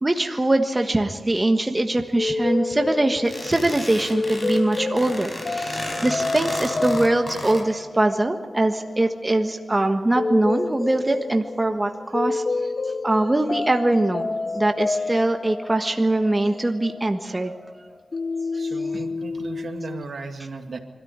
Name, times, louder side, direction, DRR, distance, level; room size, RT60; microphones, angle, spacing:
voice 1, 0.0-12.4 13.0-14.3 14.5-17.5, right 2 dB, 25° right, 5 dB, 1.4 m, -22 dB
sound 1, 2.2-17.8 18.1-20.0, left 3 dB, 55° left, 0.7 m, -29 dB
sound 2, 3.3-7.6, left 1 dB, 30° left, 5.4 m, -33 dB
voice 2, 18.5-20.8, right 4 dB, 65° right, 5 dB, 2.1 m, -36 dB
25.0 x 13.5 x 9.6 m, 1.5 s
wide cardioid pair, 75°, 0 cm